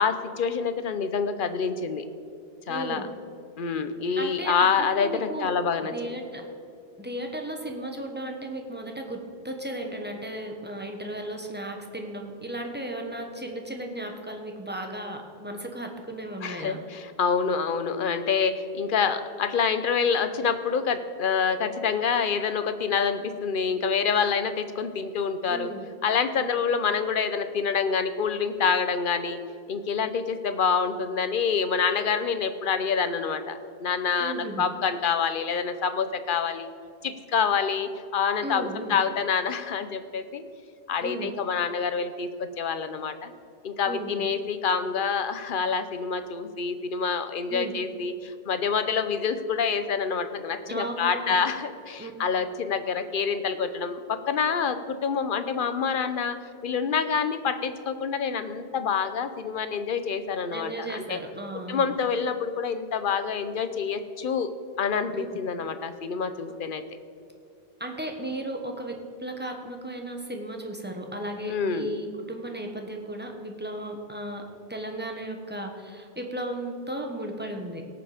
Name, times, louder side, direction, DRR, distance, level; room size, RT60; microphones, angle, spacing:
voice 1, 0.0-2.1 2.7-3.0 3.6-6.1 16.4-25.7 26.0-29.4 29.7-36.7 37.0-40.4 40.9-43.3 43.6-56.4 56.6-61.2 61.7-64.5 64.8-66.8 71.4-71.9, left 6 dB, 60° left, 10 dB, 0.9 m, -27 dB
voice 2, 2.7-3.1 4.1-5.6 5.9-6.5 7.0-16.8 25.5-25.9 26.4-26.5 34.2-34.7 38.4-39.0 41.0-41.3 43.9-44.3 47.5-47.7 50.7-51.4 52.0-52.1 60.5-61.9 65.1-65.3 67.8-68.9 69.2-77.8, right 1 dB, 10° right, 3 dB, 1.2 m, -35 dB
17.5 x 6.9 x 5.0 m, 2.5 s
omnidirectional pair, 1.0 m